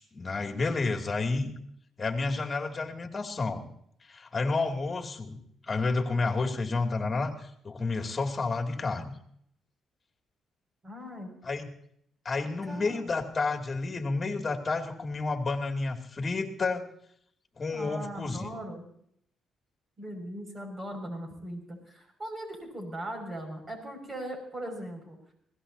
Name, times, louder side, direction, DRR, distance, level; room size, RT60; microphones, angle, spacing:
voice 1, 0.0-1.5 2.0-3.6 4.1-5.4 5.6-9.1 11.4-11.7 12.2-16.9 17.6-18.5, left 3 dB, 35° left, 3 dB, 2.6 m, -30 dB
voice 2, 10.8-11.3 12.6-13.1 17.7-18.8 20.0-25.2, right 1 dB, 30° right, 3 dB, 5.9 m, -39 dB
21.5 x 17.5 x 2.8 m, 0.68 s
cardioid pair, 90°, 0 cm